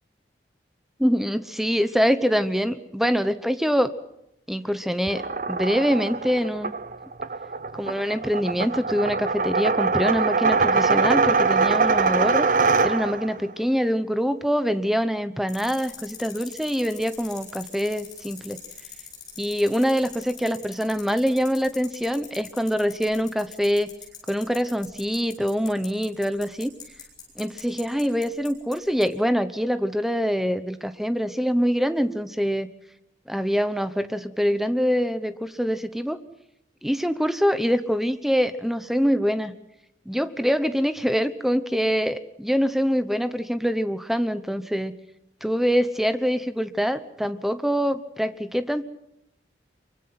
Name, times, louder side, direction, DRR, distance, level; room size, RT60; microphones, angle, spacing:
voice 1, 1.0-3.9 4.5-6.7 7.8-12.5 12.8-18.6 19.4-23.9 24.3-26.8 27.4-32.7 33.3-36.2 36.8-39.5 40.1-44.9 45.4-48.8, equal, ahead, 11 dB, 1.0 m, -24 dB
sound 1, 5.1-13.4, right 4 dB, 45° right, 0.8 m, -23 dB
sound 2, 15.5-28.7 29.0-29.1, left 7 dB, 20° left, 7.7 m, -41 dB
25.0 x 24.0 x 6.0 m, 0.83 s
head